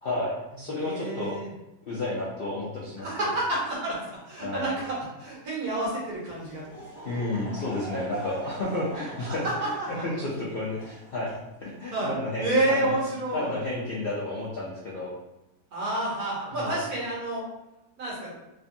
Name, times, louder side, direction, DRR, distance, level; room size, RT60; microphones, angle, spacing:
voice 1, 0.0-1.3 1.9-3.1 4.4-4.7 7.0-9.5 9.9-11.3 11.6-13.0 13.3-15.1 16.5-16.8, left 2 dB, 70° left, -6 dB, 0.5 m, -31 dB
voice 2, 0.7-1.5 3.0-6.6 9.1-10.3 11.9-12.1 12.4-13.5 15.7-17.4 18.0-18.3, right 2 dB, 75° right, -6 dB, 1.5 m, -29 dB
Laughter / Crowd, 6.2-11.9, right 1 dB, 35° right, 0.3 m, -42 dB
3.3 x 2.2 x 2.6 m, 0.94 s
omnidirectional pair, 1.6 m